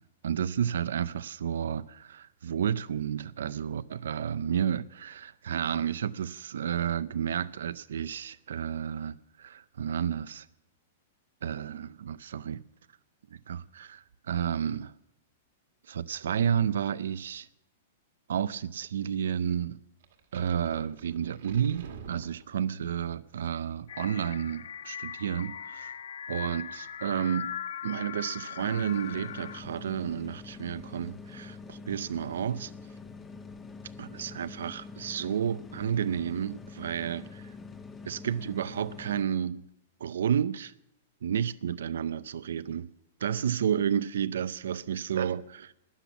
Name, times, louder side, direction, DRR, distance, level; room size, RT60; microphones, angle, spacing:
voice 1, 0.2-10.5 11.4-12.6 13.5-14.9 15.9-17.5 18.3-19.8 20.3-25.9 26.3-27.5 27.8-32.7 34.0-37.5 38.0-39.6 40.0-40.7 41.2-42.9 43.2-45.7, right 8 dB, 85° right, 0.5 m, -31 dB
sound 1, 20.0-22.9, right 6 dB, 60° right, 2.1 m, -47 dB
sound 2, 23.9-29.6, left 8 dB, 80° left, 0.5 m, -40 dB
sound 3, 28.6-39.2, left 4 dB, 10° left, 0.6 m, -45 dB
13.0 x 10.0 x 7.2 m
supercardioid pair, 175°, 0 cm